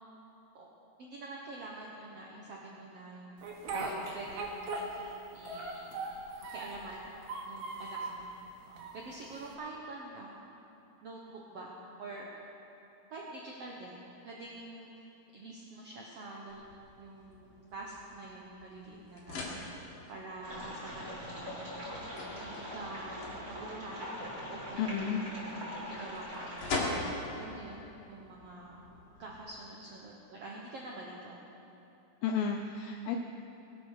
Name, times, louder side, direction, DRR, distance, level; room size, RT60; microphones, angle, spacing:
voice 1, 1.0-3.5 3.9-4.9 5.3-6.2 6.5-7.1 7.4-8.3 8.7-10.4 11.0-11.7 12.0-12.3 13.1-15.1 15.3-16.6 17.0-19.5 20.1-21.7 22.4-24.1 24.5-25.6 25.9-27.0 27.3-28.8 29.2-31.4, right 2 dB, 90° right, -2 dB, 1.3 m, -46 dB
Speech, 3.4-5.2 5.5-6.9 7.2-8.2 8.8-9.5, right 3 dB, 75° right, 3.4 m, -39 dB
sound 1, 16.5-29.4, left 2 dB, 60° left, 3.5 m, -43 dB
sound 2, 20.4-26.8, equal, 20° right, 4.1 m, -42 dB
voice 2, 24.8-25.2 32.2-33.2, left 7 dB, 80° left, 4 dB, 2.2 m, -32 dB
21.5 x 7.9 x 6.4 m, 2.9 s
omnidirectional pair, 4.6 m